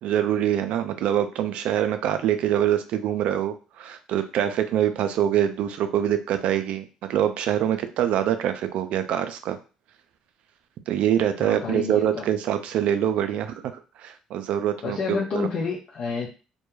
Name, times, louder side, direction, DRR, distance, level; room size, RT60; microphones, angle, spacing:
voice 1, 0.0-9.6 10.9-13.7 14.0-15.5, right 10 dB, 70° right, 9 dB, 0.3 m, -24 dB
voice 2, 11.4-12.3 14.8-16.3, left 5 dB, 60° left, -4 dB, 0.6 m, -29 dB
2.2 x 2.1 x 3.0 m, 0.34 s
supercardioid pair, 75°, 2 cm